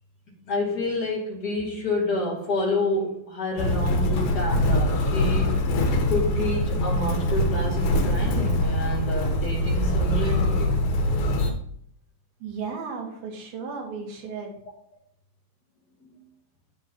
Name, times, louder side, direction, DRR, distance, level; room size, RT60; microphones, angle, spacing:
voice 1, 0.3-5.7 6.1-10.7 16.0-16.2, left 2 dB, 30° left, 2.4 m, -29 dB
Motor vehicle (road), 3.6-11.5, left 1 dB, 80° left, 3.0 m, -23 dB
voice 2, 12.4-14.5, right 5 dB, 80° right, 3.5 m, -34 dB
10.5 x 7.3 x 2.9 m
omnidirectional pair, 4.2 m